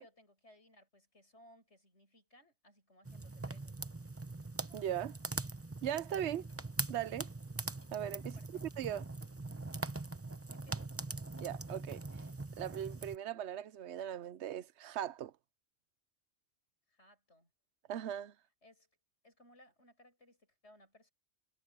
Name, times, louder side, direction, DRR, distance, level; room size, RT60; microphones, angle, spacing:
voice 1, 0.0-3.8 8.2-8.6 10.5-11.0 16.9-17.5 18.6-18.9 19.2-21.1, left 1 dB, 80° left, 8.3 m, -63 dB
sound 1, 3.1-13.2, right 2 dB, 15° right, 0.8 m, -42 dB
voice 2, 4.7-5.2 5.8-6.5 6.9-7.3 7.9-8.3 8.6-9.0 11.4-12.0 12.6-15.3 17.9-18.3, right 10 dB, 75° right, 1.0 m, -39 dB
omnidirectional pair, 1.2 m